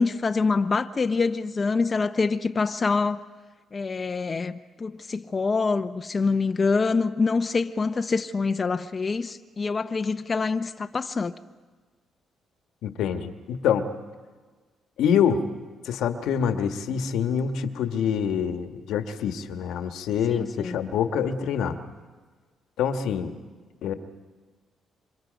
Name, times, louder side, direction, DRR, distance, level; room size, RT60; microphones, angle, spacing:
voice 1, 0.0-3.2 3.7-11.3 20.3-20.8, left 4 dB, 35° left, 0.7 m, -25 dB
voice 2, 12.8-13.9 15.0-15.4 15.8-21.8 22.8-23.4 23.8-23.9, left 7 dB, 85° left, 1.4 m, -26 dB
27.0 x 24.5 x 5.2 m
cardioid pair, 90°, 0 cm